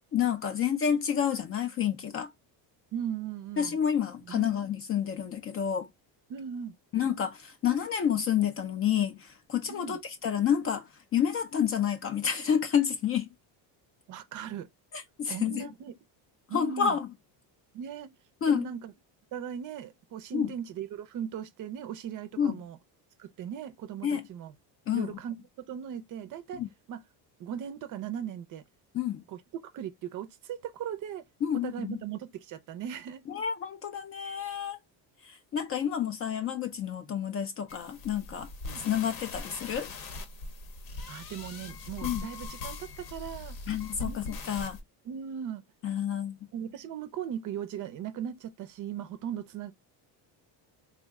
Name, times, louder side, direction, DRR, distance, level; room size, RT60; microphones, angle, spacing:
voice 1, 0.1-2.3 3.6-5.9 6.9-13.3 14.9-15.7 16.5-17.1 18.4-18.7 20.3-20.5 22.4-22.6 24.0-24.2 24.9-25.2 26.5-26.7 28.9-29.2 31.4-32.0 33.3-34.8 35.2-38.5 38.8-39.9 42.0-42.3 43.7-44.8 45.8-46.4, left 8 dB, 35° left, 0.4 m, -29 dB
voice 2, 2.9-3.8 4.3-4.6 6.3-6.7 9.7-10.0 14.1-14.7 15.3-15.9 16.5-16.9 17.7-18.1 18.5-18.9 19.3-22.8 23.2-24.5 24.9-25.3 25.7-26.6 26.9-27.0 27.4-28.6 29.3-31.2 31.6-33.2 38.7-38.8 41.1-43.6 44.0-44.2 45.1-45.6 46.5-49.7, right 9 dB, 45° right, 0.5 m, -38 dB
sound 1, 37.7-44.8, left 3 dB, 50° left, 0.8 m, -41 dB
3.7 x 2.1 x 3.4 m
cardioid pair, 150°, 43 cm